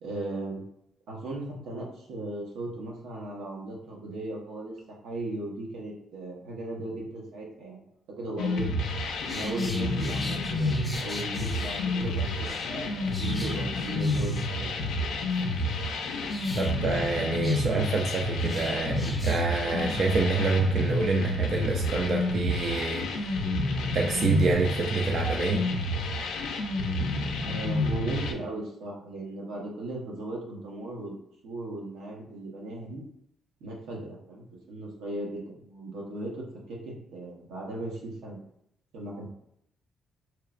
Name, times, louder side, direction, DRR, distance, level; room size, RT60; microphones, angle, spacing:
voice 1, 0.0-0.6 1.1-7.8 8.2-8.7 9.3-14.7 27.4-31.2 31.4-33.0 33.6-38.4 38.9-39.3, right 1 dB, 85° right, -2 dB, 0.7 m, -37 dB
sound 1, 8.4-28.3, left 2 dB, 85° left, 0.4 m, -29 dB
sound 2, 9.1-12.7 13.1-14.8 15.1-19.5 19.8-20.0, left 1 dB, 10° left, 0.5 m, -43 dB
voice 2, 16.6-23.4 23.9-25.7, right 3 dB, 50° right, 1 dB, 0.3 m, -27 dB
3.0 x 2.1 x 2.3 m, 0.75 s
cardioid pair, 90°, 0 cm